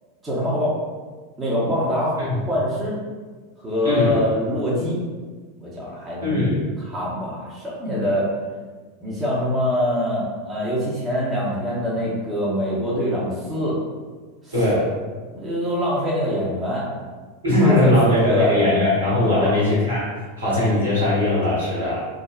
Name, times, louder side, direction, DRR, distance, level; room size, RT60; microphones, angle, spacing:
voice 1, 0.2-0.7 1.4-2.2 2.5-3.0 3.6-5.0 5.6-6.5 6.9-8.3 9.0-13.8 14.4-14.5 15.3-16.9 17.6-19.6, left 1 dB, 20° right, -7 dB, 0.9 m, -24 dB
voice 2, 3.8-4.2 6.2-6.6 14.5-14.9 17.4-20.1 20.4-22.1, left 1 dB, 80° right, -8 dB, 1.2 m, -19 dB
3.6 x 2.0 x 2.3 m, 1.4 s
figure-of-eight pair, 85°, 0 cm